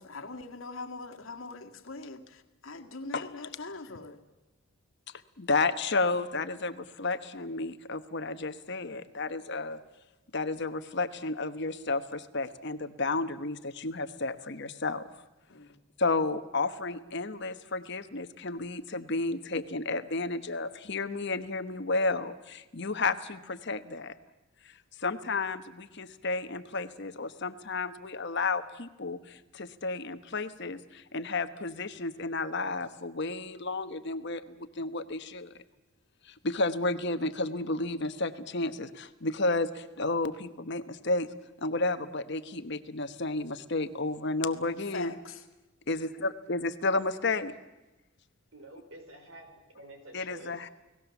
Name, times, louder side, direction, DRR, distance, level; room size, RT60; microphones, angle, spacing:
voice 1, 0.0-4.2 15.5-15.8 44.9-45.4, left 3 dB, 70° left, 4 dB, 1.9 m, -42 dB
voice 2, 5.4-9.8 10.3-15.0 16.0-24.1 24.6-24.7 25.0-35.5 36.2-41.3 41.6-45.1 45.9-47.5 50.1-50.7, left 3 dB, 55° left, 11 dB, 1.1 m, -32 dB
voice 3, 48.5-50.6, right 1 dB, 70° right, 6 dB, 4.5 m, -49 dB
29.5 x 18.5 x 7.2 m, 1.1 s
head